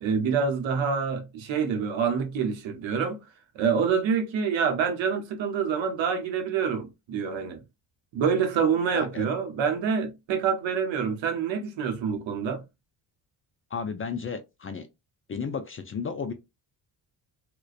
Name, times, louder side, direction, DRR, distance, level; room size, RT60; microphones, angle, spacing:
voice 1, 0.0-3.2 3.5-7.6 8.1-12.6, right 6 dB, 70° right, 0.8 m, -26 dB
voice 2, 8.9-9.3 13.7-14.9 15.3-16.3, left 5 dB, 30° left, 0.3 m, -33 dB
2.4 x 2.2 x 2.4 m
supercardioid pair, 65°, 47 cm